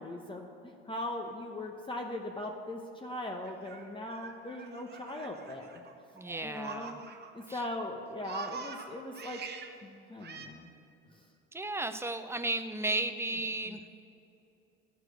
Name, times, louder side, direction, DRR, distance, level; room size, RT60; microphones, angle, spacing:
voice 1, 0.0-5.8 6.4-7.0 7.3-9.4 9.8-10.7 13.7-13.8, left 1 dB, 15° left, 2 dB, 0.9 m, -40 dB
Laughter, 3.4-7.5 7.8-9.7 10.2-10.5, right 5 dB, 35° right, 1.0 m, -45 dB
voice 2, 6.1-7.0 7.5-7.6 11.5-13.8, right 2 dB, 10° right, 9 dB, 0.6 m, -34 dB
13.5 x 4.7 x 6.3 m, 2.8 s
hypercardioid pair, 65°, 29 cm